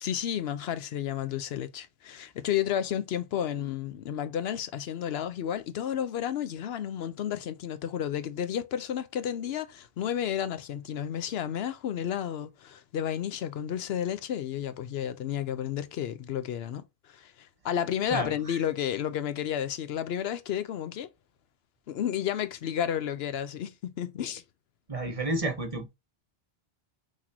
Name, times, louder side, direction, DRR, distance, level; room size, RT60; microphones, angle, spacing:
voice 1, 0.0-21.1 21.9-24.4, left 9 dB, 75° left, 0.8 m, -32 dB
voice 2, 18.1-18.6 24.9-25.9, right 2 dB, 35° right, 1.0 m, -31 dB
5.9 x 3.0 x 2.8 m
omnidirectional pair, 1.1 m